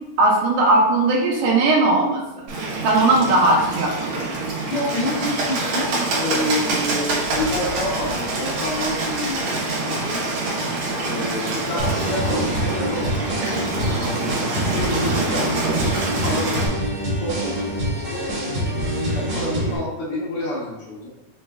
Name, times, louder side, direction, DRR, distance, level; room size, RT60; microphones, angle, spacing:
voice 1, 0.2-2.2 2.8-4.4, right 2 dB, 85° right, -3 dB, 2.4 m, -18 dB
Bird, 2.5-16.7, right 2 dB, 70° right, 1.9 m, -25 dB
voice 2, 4.6-10.2 11.0-13.1 13.5-15.7 16.0-16.7 17.0-17.7 17.9-21.1, left 1 dB, 70° left, -5 dB, 1.4 m, -29 dB
sound 1, 11.8-19.8, equal, 45° right, 1.5 m, -25 dB
5.1 x 3.8 x 2.3 m, 1.0 s
omnidirectional pair, 3.9 m